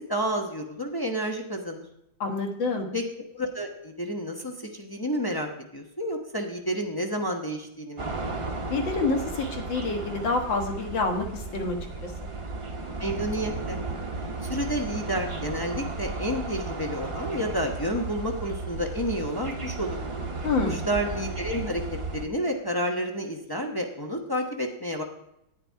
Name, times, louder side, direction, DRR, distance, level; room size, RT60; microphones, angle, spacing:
voice 1, 0.1-1.8 2.9-3.0 3.3-8.1 13.0-13.8 14.4-20.0 20.6-21.8 22.1-25.0, equal, 30° left, 1 dB, 0.4 m, -30 dB
voice 2, 2.2-2.9 8.7-11.8 12.0-12.1 20.4-20.8, left 3 dB, 65° left, 4 dB, 2.1 m, -27 dB
sound 1, 8.0-22.3, right 3 dB, 35° right, 0.5 m, -34 dB
10.0 x 9.9 x 4.5 m, 0.80 s
omnidirectional pair, 2.2 m